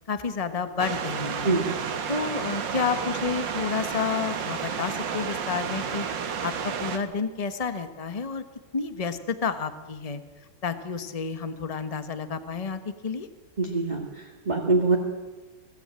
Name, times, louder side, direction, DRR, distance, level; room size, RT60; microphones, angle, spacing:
voice 1, 0.1-1.6 2.1-8.4 8.7-10.2 10.6-13.3, left 5 dB, 25° left, 10 dB, 1.1 m, -30 dB
sound 1, 0.8-7.0, right 6 dB, 85° right, 2.1 m, -31 dB
voice 2, 13.6-15.0, right 3 dB, 25° right, 1 dB, 2.0 m, -24 dB
23.0 x 17.5 x 9.0 m, 1.3 s
omnidirectional pair, 1.9 m